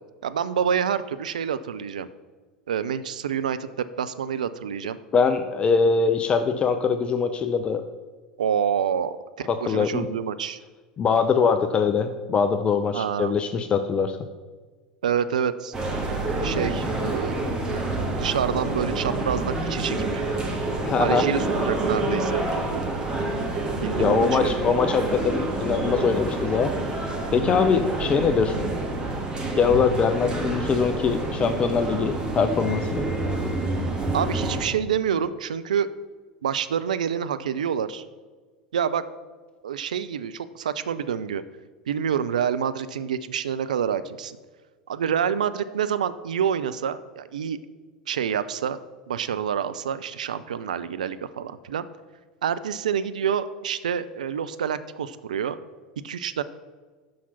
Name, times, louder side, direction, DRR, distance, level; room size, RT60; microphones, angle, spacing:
voice 1, 0.2-2.1 2.7-5.0 8.4-10.6 12.9-13.3 15.0-15.7 16.4-17.4 18.1-20.2 21.0-22.4 22.7-22.8 23.8-24.5 34.1-35.9 36.4-38.0 38.7-39.0 39.6-41.4 41.9-44.4 44.9-47.6 48.1-48.8 49.1-51.9 52.4-55.6 56.0-56.4, right 8 dB, 70° right, 13 dB, 0.3 m, -27 dB
voice 2, 5.1-7.8 9.5-10.1 11.0-14.2 20.8-21.2 24.0-26.7 27.3-28.7 29.6-33.0, left 5 dB, 25° left, 8 dB, 0.4 m, -22 dB
sound 1, 15.7-34.6, right 2 dB, 20° right, 1.5 m, -27 dB
6.3 x 5.7 x 5.7 m, 1.4 s
figure-of-eight pair, 80°, 4 cm